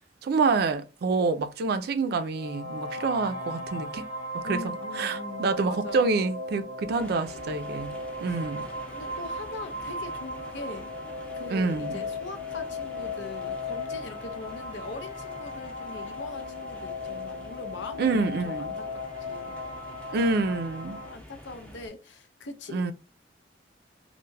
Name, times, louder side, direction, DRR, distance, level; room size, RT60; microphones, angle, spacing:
voice 1, 0.2-4.1 4.3-7.9 8.2-8.7 11.5-12.0 18.0-18.7 20.1-21.0 22.7-22.9, right 4 dB, 60° right, 0.3 m, -27 dB
sound 1, 2.3-21.1, left 2 dB, 30° left, 0.8 m, -37 dB
voice 2, 4.4-6.1 8.2-8.4 8.9-18.9 19.2-19.5 21.1-22.9, left 3 dB, 80° left, 0.5 m, -42 dB
sound 2, 7.0-21.9, equal, 5° left, 0.5 m, -48 dB
2.2 x 2.1 x 3.1 m
head